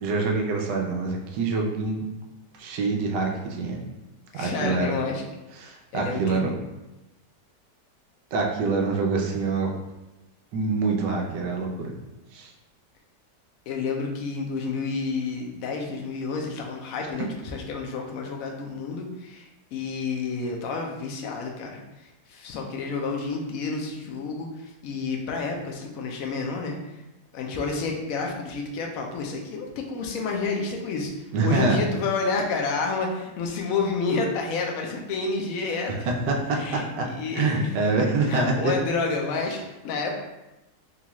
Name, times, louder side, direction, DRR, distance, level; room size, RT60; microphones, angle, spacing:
voice 1, 0.0-2.1 2.6-3.8 4.3-4.9 5.6-6.5 8.3-9.7 10.5-11.9 12.3-12.5 31.3-31.9 36.1-38.7, right 3 dB, 90° right, 1 dB, 1.3 m, -25 dB
voice 2, 4.3-5.2 5.9-6.4 13.7-27.0 27.3-35.9 36.5-37.7 38.2-40.1, left 4 dB, 70° left, 1 dB, 0.9 m, -30 dB
4.0 x 2.3 x 2.9 m, 0.99 s
omnidirectional pair, 1.8 m